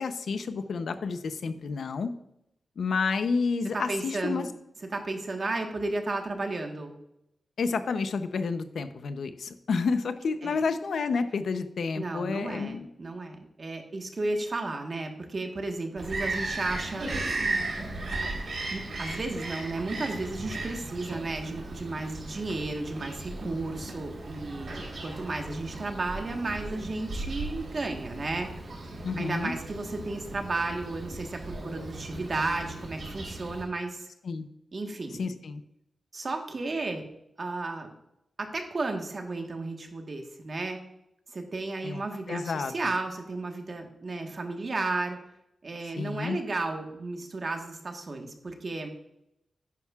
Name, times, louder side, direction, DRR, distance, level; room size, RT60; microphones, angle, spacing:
voice 1, 0.0-2.1 2.8-4.5 7.6-12.9 29.0-29.5 34.2-34.5 35.2-35.6 41.8-42.0 42.3-42.9 45.9-46.4, left 4 dB, 80° left, 10 dB, 0.7 m, -30 dB
voice 2, 3.7-4.5 4.9-6.9 10.4-10.6 11.9-17.1 18.2-18.3 18.7-28.5 28.8-34.1 34.7-35.2 36.1-37.0 37.4-37.9 38.4-40.8 41.3-45.2 45.6-48.9, right 2 dB, 45° right, 3 dB, 1.4 m, -33 dB
Bird vocalization bird call bird song, 16.0-33.6, right 2 dB, 65° right, 3.8 m, -36 dB
11.0 x 9.2 x 2.4 m, 0.82 s
wide cardioid pair, 130°, 0 cm